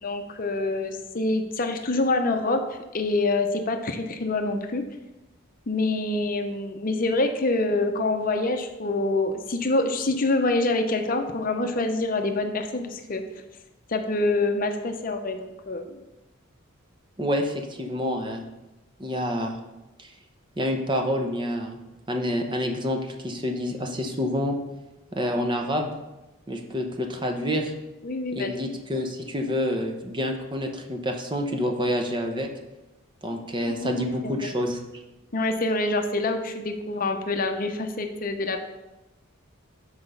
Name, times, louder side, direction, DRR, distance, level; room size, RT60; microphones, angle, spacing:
voice 1, 0.0-4.8 5.7-13.2 13.9-16.0 28.0-28.5 33.6-34.5 35.3-38.6, left 2 dB, 40° left, 6 dB, 0.7 m, -26 dB
voice 2, 17.2-18.4 19.0-19.6 20.0-20.1 20.6-21.8 22.1-24.5 25.1-25.9 26.5-27.7 28.3-32.5 33.2-34.8, equal, 20° right, 4 dB, 0.7 m, -28 dB
6.0 x 4.8 x 6.7 m, 1.0 s
head